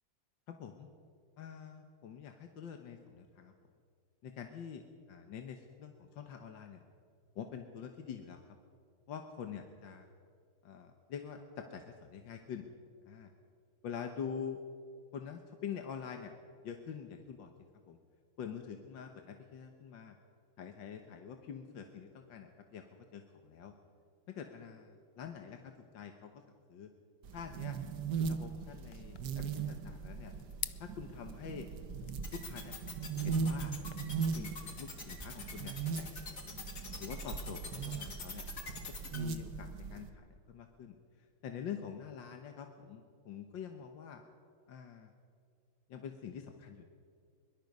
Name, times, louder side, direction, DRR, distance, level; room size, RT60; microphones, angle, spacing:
voice 1, 0.5-0.9 1.4-3.5 4.2-4.8 5.1-6.8 7.4-8.4 9.1-10.1 10.6-12.7 13.1-13.3 13.8-14.6 15.1-16.3 16.6-17.5 17.9-18.0 18.4-20.2 20.6-22.9 23.1-23.7 24.3-26.3 26.7-26.9 27.3-27.8 28.2-30.3 30.8-31.7 32.3-32.7 33.2-33.7 34.4-36.4 37.0-38.5 39.1-41.0 41.4-44.2 44.7-45.1 45.9-46.8, left 7 dB, 65° left, 5 dB, 1.8 m, -45 dB
sound 1, 27.2-40.1, right 5 dB, 55° right, 1.6 m, -39 dB
sound 2, 28.9-33.9, left 15 dB, 85° left, 1.5 m, -49 dB
sound 3, 32.2-39.2, left 4 dB, 40° left, 2.5 m, -44 dB
23.0 x 22.0 x 5.4 m, 2.2 s
omnidirectional pair, 2.3 m